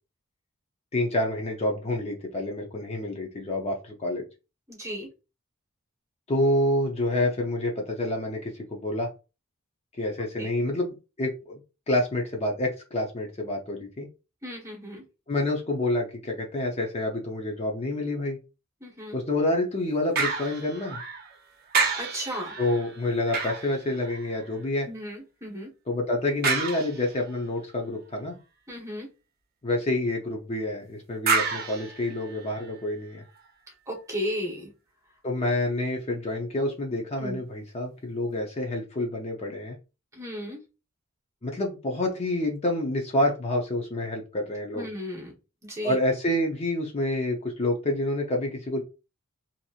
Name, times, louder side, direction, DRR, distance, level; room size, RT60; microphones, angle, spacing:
voice 1, 0.9-4.2 6.3-9.1 10.0-11.6 11.9-14.1 15.3-18.4 19.1-21.0 22.6-24.9 25.9-28.4 29.6-33.2 35.2-39.8 41.4-44.9 45.8-48.8, left 1 dB, 30° left, 0 dB, 0.5 m, -28 dB
voice 2, 4.7-5.1 10.4-10.5 14.4-15.0 18.8-19.2 21.9-22.5 24.9-25.7 28.7-29.1 33.9-34.7 37.2-37.4 40.1-40.6 44.7-45.3 45.6-46.0, equal, 15° right, -1 dB, 1.0 m, -35 dB
sound 1, 20.2-21.4 21.7-24.6 26.4-27.4 31.3-32.7 33.3-33.4, right 4 dB, 45° right, 0.7 m, -30 dB
2.9 x 2.7 x 2.3 m, 0.29 s
head